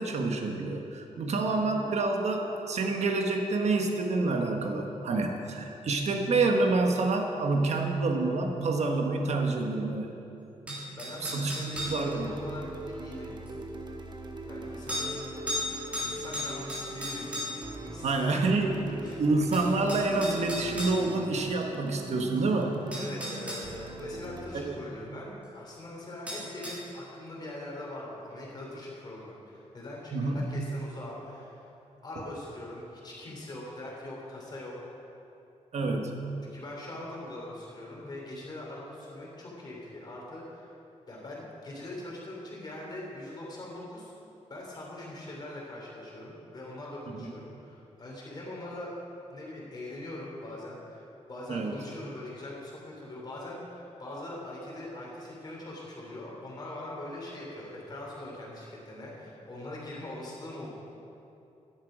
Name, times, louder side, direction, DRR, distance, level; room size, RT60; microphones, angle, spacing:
voice 1, 0.0-10.1 10.6-10.8 11.2-11.5 11.9-12.3 18.0-18.8 19.2-22.8 24.5-25.0 30.1-30.4 35.7-36.2 47.1-47.3 51.5-51.7, right 3 dB, 65° right, 3 dB, 1.3 m, -28 dB
sound 1, 10.7-12.0 13.5-13.6 14.9-15.1 15.5-15.7 15.9-17.7 19.1-19.2 19.5-21.0 22.4-22.5 22.9-23.6 26.3-26.8, left 1 dB, 10° right, 3.3 m, -35 dB
voice 2, 11.0-13.4 14.4-15.3 16.0-17.5 17.8-18.7 19.0-19.2 22.9-31.6 32.0-34.8 36.4-40.7 41.1-44.1 44.5-48.9 49.3-60.7, left 1 dB, 35° left, -4 dB, 3.1 m, -42 dB
sound 2, 11.7-24.5, right 2 dB, 40° right, 1.0 m, -42 dB
13.0 x 10.5 x 5.0 m, 2.9 s
wide cardioid pair, 165°, 12 cm